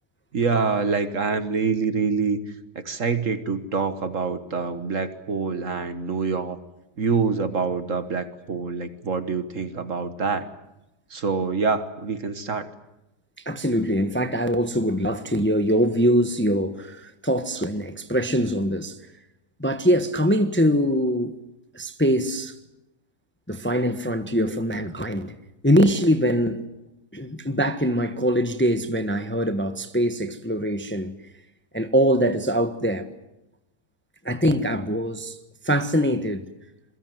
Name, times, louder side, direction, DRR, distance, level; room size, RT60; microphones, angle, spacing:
voice 1, 0.3-2.4 2.7-6.6 7.0-10.5 11.1-12.7, right 5 dB, 50° right, 1.7 m, -26 dB
voice 2, 13.4-19.0 19.6-21.3 21.7-22.5 23.5-25.4 25.6-26.6 27.1-31.1 31.7-33.1 34.2-35.3 35.6-36.4, equal, 10° left, 1.2 m, -23 dB
27.5 x 22.5 x 7.7 m
omnidirectional pair, 1.8 m